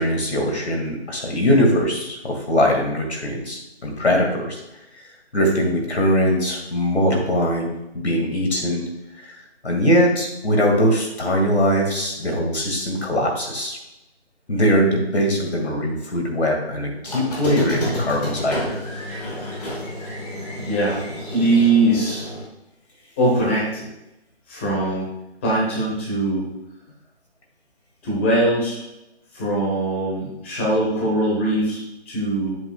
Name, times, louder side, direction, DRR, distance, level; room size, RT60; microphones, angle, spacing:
voice 1, 0.0-4.6 4.9-5.0 5.3-7.7 7.9-8.8 9.1-9.4 9.6-13.8 14.5-18.7, equal, 75° left, 1 dB, 2.3 m, -21 dB
Squeak, 17.0-22.4, left 1 dB, 35° left, 2.2 m, -30 dB
voice 2, 20.6-21.0 21.3-22.3 23.2-23.8 24.5-25.1 25.4-26.4 28.0-28.8 29.3-31.8 32.1-32.6, right 2 dB, 10° left, -5 dB, 1.1 m, -21 dB
7.7 x 7.7 x 2.4 m, 0.91 s
figure-of-eight pair, 165°, 33 cm